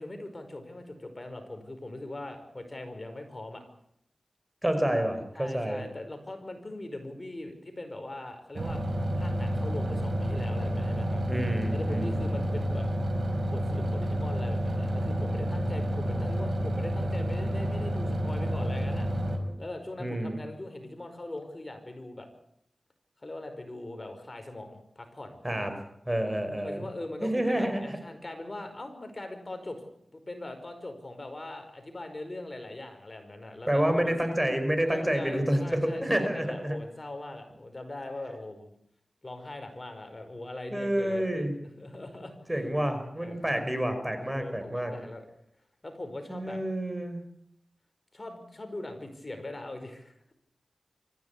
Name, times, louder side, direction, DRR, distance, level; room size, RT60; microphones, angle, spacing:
voice 1, 0.0-3.6 5.3-8.8 9.1-11.2 11.7-12.9 13.5-19.1 19.6-22.3 23.2-25.4 26.6-29.8 30.1-34.1 34.8-38.7 39.2-42.5 43.2-43.5 44.2-45.3 45.8-46.6 48.1-50.3, left 2 dB, 40° left, 6 dB, 5.0 m, -41 dB
voice 2, 4.6-5.9 11.3-12.1 20.0-20.4 25.4-25.7 26.1-26.8 27.2-28.0 33.7-36.8 40.7-41.6 42.5-44.9 46.3-47.2, right 1 dB, 15° right, 7 dB, 5.5 m, -28 dB
sound 1, 8.5-19.4, equal, 65° right, 4.7 m, -29 dB
25.0 x 15.0 x 8.5 m, 0.73 s
cardioid pair, 50°, 0 cm